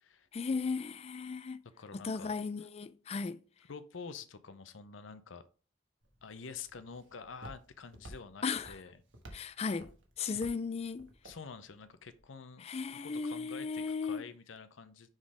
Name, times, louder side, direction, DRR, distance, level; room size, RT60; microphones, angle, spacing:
voice 1, 0.3-1.6 1.9-3.4 8.4-8.8 9.3-9.9 10.2-11.1 12.6-14.2, left 5 dB, 30° left, 0.3 m, -36 dB
voice 2, 1.8-2.4 3.7-5.4 6.2-9.0 10.3-10.4 11.2-15.1, left 5 dB, 85° left, 0.7 m, -48 dB
Walk footsteps, 6.0-12.2, right 1 dB, 80° right, 1.4 m, -54 dB
6.3 x 3.8 x 4.8 m
head